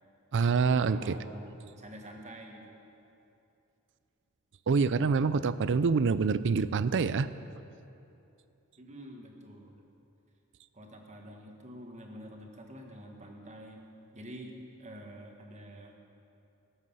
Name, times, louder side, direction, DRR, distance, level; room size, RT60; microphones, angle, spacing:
voice 1, 0.3-1.2 4.7-7.3, right 5 dB, 55° right, 14 dB, 0.4 m, -26 dB
voice 2, 0.9-2.8 8.8-9.8 10.7-13.8 14.1-16.0, equal, 30° right, 2 dB, 1.6 m, -47 dB
19.0 x 8.1 x 5.6 m, 2.7 s
head